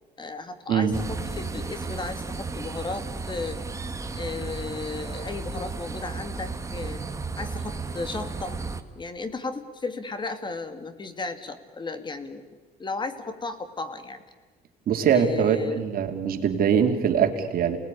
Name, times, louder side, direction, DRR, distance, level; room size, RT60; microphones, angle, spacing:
voice 1, 0.2-3.6 4.2-7.0 7.4-8.6 9.0-12.5 12.8-14.2 15.1-15.8 16.8-17.0, left 3 dB, 25° left, 9 dB, 2.2 m, -34 dB
sound 1, 0.9-8.8, right 4 dB, 20° right, 1.6 m, -34 dB
voice 2, 14.9-17.8, right 8 dB, 60° right, 4 dB, 3.0 m, -22 dB
27.5 x 19.0 x 9.9 m, 1.4 s
cardioid pair, 110°, 17 cm